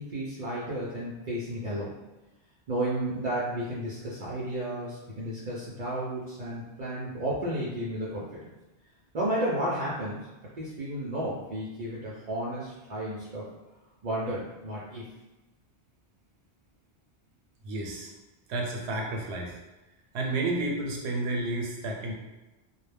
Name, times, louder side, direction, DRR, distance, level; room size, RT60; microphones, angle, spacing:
voice 1, 0.0-1.9 2.7-8.3 9.1-10.3 10.6-13.5 14.0-15.1, right 1 dB, 50° right, -7 dB, 0.5 m, -32 dB
voice 2, 17.6-18.1 18.5-19.6 20.1-22.1, right 2 dB, 85° right, 0 dB, 0.9 m, -31 dB
2.2 x 2.0 x 3.2 m, 1.1 s
omnidirectional pair, 1.1 m